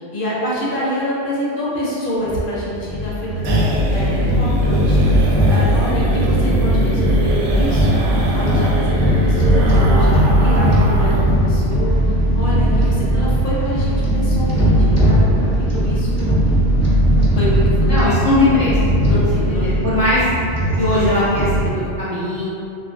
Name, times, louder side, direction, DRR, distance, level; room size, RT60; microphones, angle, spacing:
voice 1, 0.0-3.6 3.9-16.3 17.3-18.4 19.1-19.7, equal, 55° left, -7 dB, 0.8 m, -27 dB
sound 1, 2.2-21.6, equal, 20° left, 0.4 m, -17 dB
sound 2, 2.2-11.3 11.6-11.7 12.0-12.1 12.5-12.9, right 1 dB, 75° right, 0.9 m, -27 dB
voice 2, 17.9-18.7 19.1-20.3 20.8-22.5, left 1 dB, 40° right, -11 dB, 0.7 m, -19 dB
3.1 x 2.4 x 2.5 m, 2.6 s
omnidirectional pair, 1.2 m